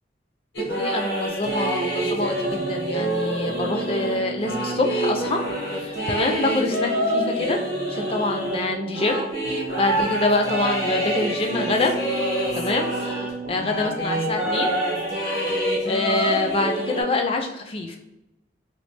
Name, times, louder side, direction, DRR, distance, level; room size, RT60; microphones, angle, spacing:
sound 1, 0.5-13.3 13.6-17.0, right 1 dB, 90° left, 1.1 m, -26 dB
voice 1, 0.6-5.4 5.7-7.6 7.9-11.9 12.5-14.7 15.9-18.0, left 2 dB, 30° left, 4 dB, 0.4 m, -26 dB
sound 2, 1.3-17.1, right 3 dB, 50° right, 0.4 m, -35 dB
3.1 x 2.8 x 3.2 m, 0.89 s
head